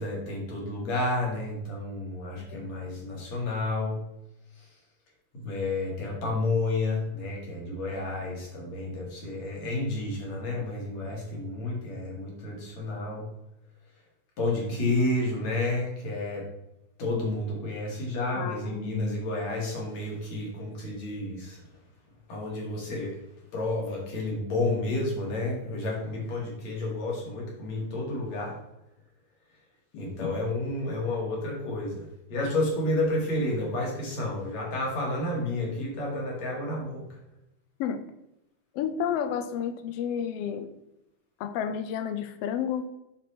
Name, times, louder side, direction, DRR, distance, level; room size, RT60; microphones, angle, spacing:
voice 1, 0.0-4.0 4.6-4.7 5.3-13.3 14.4-16.5 17.0-21.6 22.3-23.2 23.5-28.6 30.0-37.1, left 2 dB, 60° left, -3 dB, 3.9 m, -30 dB
voice 2, 2.4-2.7 18.4-19.2 29.9-30.3 37.8-38.0 38.7-40.7 41.4-42.8, left 8 dB, 80° left, 9 dB, 1.4 m, -31 dB
7.9 x 6.7 x 4.4 m, 0.89 s
omnidirectional pair, 3.5 m